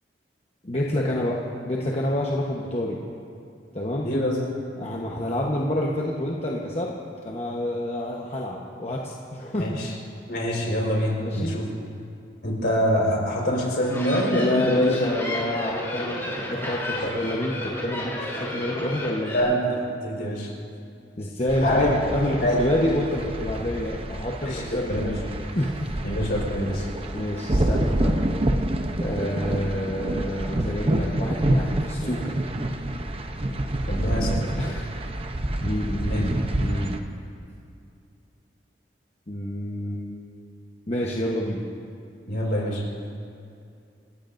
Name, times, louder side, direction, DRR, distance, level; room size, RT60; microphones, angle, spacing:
voice 1, 0.6-1.4 1.6-3.0 3.7-4.1 4.8-6.9 7.2-9.8 11.2-11.6 14.3-16.2 16.5-19.3 21.2-25.2 25.5-25.9 27.1-28.2 29.0-32.4 34.1-34.9 35.6-37.0 39.3-40.3 40.9-41.6, left 1 dB, 35° left, -3 dB, 1.1 m, -28 dB
voice 2, 4.0-4.4 9.6-9.9 10.3-11.7 12.4-15.0 19.3-20.5 21.6-21.9 22.4-22.6 24.4-25.1 26.0-26.9 33.9-34.3 36.1-36.2 42.3-42.8, equal, 65° left, -2 dB, 4.6 m, -25 dB
sound 1, 13.6-19.4, left 1 dB, 15° left, 4.1 m, -32 dB
sound 2, 21.5-37.0, right 1 dB, 35° right, 0.8 m, -27 dB
28.0 x 15.0 x 2.7 m, 2.5 s
head